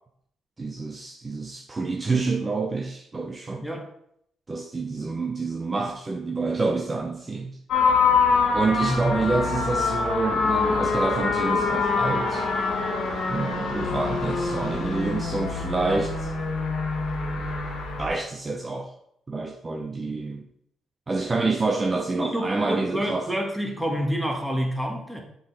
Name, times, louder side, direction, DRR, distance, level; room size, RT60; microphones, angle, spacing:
voice 1, 0.6-3.6 4.5-7.6 8.5-12.5 13.3-16.3 17.4-17.5 18.0-18.9 19.3-20.5 21.1-23.3, right 3 dB, 25° right, 0.6 m, -27 dB
sound 1, 7.7-18.1, left 4 dB, 75° left, 1.5 m, -25 dB
voice 2, 8.8-9.2 22.2-25.2, equal, 5° right, 1.3 m, -28 dB
7.0 x 4.0 x 3.9 m
cardioid pair, 90°, 0 cm